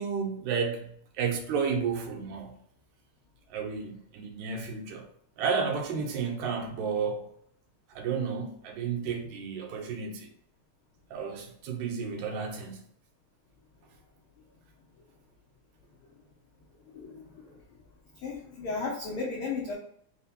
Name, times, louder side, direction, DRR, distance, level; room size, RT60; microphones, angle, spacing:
voice 1, 0.0-2.5 3.5-5.0 5.4-7.3 7.9-10.3 11.1-12.8, right 6 dB, 90° right, 2.1 m, -32 dB
voice 2, 16.9-17.6 18.1-19.7, left 4 dB, 85° left, 1.2 m, -35 dB
4.7 x 2.1 x 4.1 m
omnidirectional pair, 3.3 m